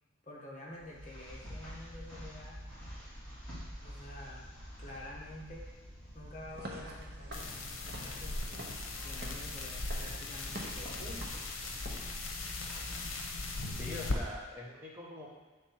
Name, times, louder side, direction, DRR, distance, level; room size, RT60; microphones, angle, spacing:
voice 1, 0.2-2.6 3.8-5.7 6.1-11.5 13.9-14.1, left 1 dB, 40° left, -3 dB, 1.0 m, -49 dB
sound 1, 0.7-13.8, equal, 5° left, 2.0 m, -47 dB
Walk footsteps / Siren, 6.5-12.1, right 1 dB, 55° right, 0.8 m, -48 dB
sound 2, 7.3-14.2, left 3 dB, 80° left, 0.8 m, -39 dB
voice 2, 13.7-15.3, left 1 dB, 10° right, -6 dB, 1.1 m, -43 dB
7.1 x 3.4 x 4.5 m, 1.3 s
head